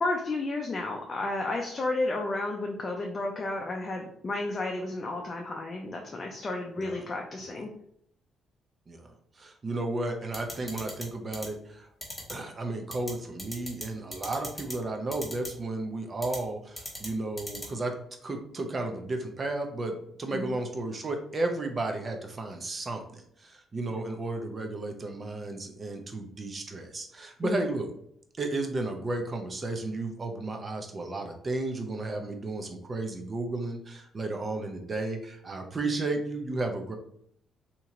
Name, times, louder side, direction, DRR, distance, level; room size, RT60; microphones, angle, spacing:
voice 1, 0.0-7.7 20.3-20.6 27.4-27.6, left 2 dB, 35° left, 0 dB, 0.5 m, -32 dB
voice 2, 8.9-11.9 12.3-17.9 18.2-27.9 28.4-36.9, right 2 dB, 35° right, 4 dB, 0.7 m, -33 dB
sound 1, 10.3-11.0 11.3-11.5 12.0-12.3 12.9-13.1 13.4-13.8 14.1-14.7 15.1-15.5 16.2-16.4 16.8-17.1 17.4-17.7, left 1 dB, 10° left, 1.3 m, -37 dB
2.9 x 2.8 x 3.7 m, 0.68 s
cardioid pair, 90°, 0 cm